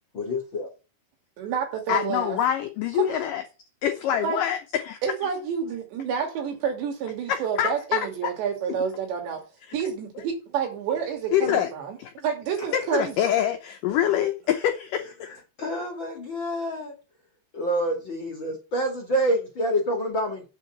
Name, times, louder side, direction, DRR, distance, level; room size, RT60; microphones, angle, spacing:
voice 1, 0.1-0.7 15.6-16.9 17.5-20.4, equal, 40° left, 2.0 m, -27 dB
voice 2, 1.4-2.4 3.0-3.2 4.2-4.4 5.0-9.4 9.7-13.2, right 7 dB, 85° right, 4.8 m, -29 dB
voice 3, 1.9-3.4 3.8-5.0 7.3-8.0 9.7-9.8 11.3-11.7 12.0-12.1 12.7-15.4, left 10 dB, 80° left, 1.9 m, -25 dB
8.1 x 5.7 x 7.3 m
omnidirectional pair, 4.9 m